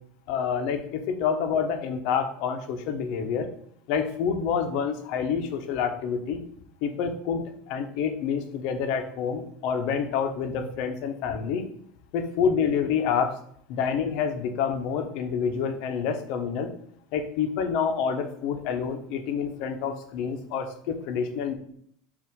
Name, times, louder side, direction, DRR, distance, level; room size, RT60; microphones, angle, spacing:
voice 1, 0.3-3.5 3.9-6.4 6.8-7.4 7.7-11.7 12.1-13.3 13.7-16.7 17.1-21.5, left 6 dB, 60° left, 6 dB, 1.0 m, -28 dB
6.8 x 2.8 x 5.3 m, 0.64 s
hypercardioid pair, 85°, 0 cm